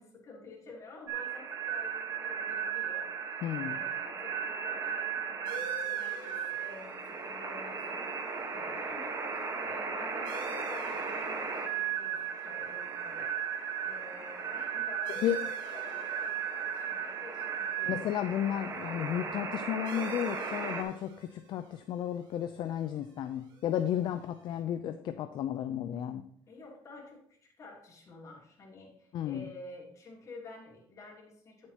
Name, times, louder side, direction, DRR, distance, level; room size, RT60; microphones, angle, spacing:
voice 1, 0.0-13.3 13.8-18.1 26.5-31.7, left 3 dB, 40° left, -3 dB, 3.1 m, -50 dB
sound 1, 1.1-20.8, right 7 dB, 40° right, 1.3 m, -36 dB
voice 2, 3.4-3.8 15.2-15.4 17.9-26.2 29.1-29.5, left 10 dB, 60° left, 8 dB, 0.5 m, -33 dB
sound 2, 5.4-24.6, right 2 dB, 55° right, 2.1 m, -52 dB
10.0 x 7.4 x 2.9 m, 0.64 s
cardioid pair, 115°, 9 cm